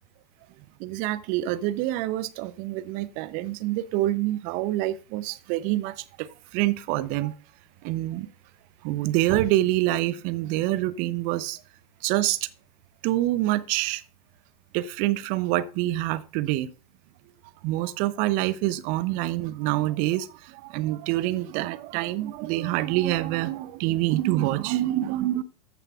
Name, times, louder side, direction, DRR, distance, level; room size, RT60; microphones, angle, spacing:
voice 1, 0.8-7.3 7.8-8.3 8.8-11.6 12.0-12.4 13.0-14.0 14.7-16.7 17.6-25.4, right 15 dB, 45° right, 0.8 m, -26 dB
14.5 x 6.7 x 2.5 m
figure-of-eight pair, 90°, 20 cm